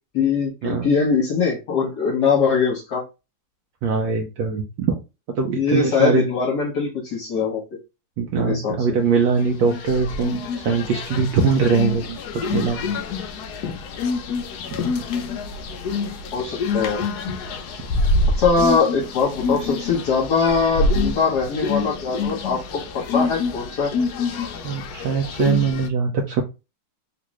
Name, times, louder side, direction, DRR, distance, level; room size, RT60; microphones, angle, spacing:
voice 1, 0.1-3.0 5.6-7.6 8.3-8.7 14.8-14.9 16.3-17.0 18.4-23.9, left 5 dB, 60° left, -1 dB, 1.3 m, -22 dB
voice 2, 3.8-5.0 5.4-6.2 8.2-13.0 14.7-14.8 24.6-26.4, right 5 dB, 70° right, 2 dB, 1.2 m, -22 dB
sound 1, 9.4-25.9, left 3 dB, 75° left, 0.9 m, -26 dB
3.6 x 2.5 x 3.0 m, 0.26 s
omnidirectional pair, 2.3 m